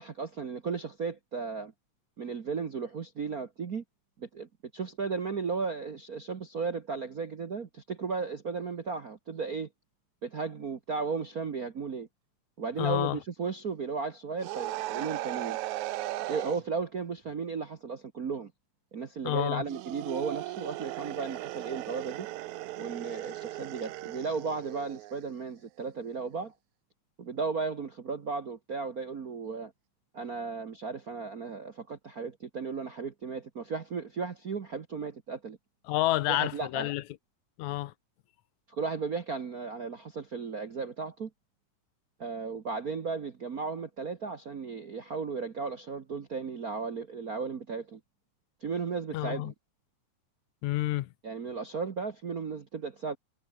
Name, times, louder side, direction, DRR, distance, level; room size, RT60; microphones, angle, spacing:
voice 1, 0.0-1.7 2.2-3.8 4.2-9.7 10.2-12.1 12.6-15.6 16.3-18.5 18.9-22.3 22.8-26.5 27.2-29.7 30.1-35.6 36.3-36.9 38.7-41.3 42.2-48.0 48.6-49.5 51.2-53.2, right 5 dB, 50° right, 1.1 m, -35 dB
voice 2, 12.8-13.2 19.2-19.6 35.9-37.0 37.6-37.9 49.1-49.5 50.6-51.1, left 15 dB, 80° left, 2.1 m, -29 dB
sound 1, 14.4-16.6 19.6-25.2, right 16 dB, 75° right, 2.1 m, -37 dB
omnidirectional pair, 3.4 m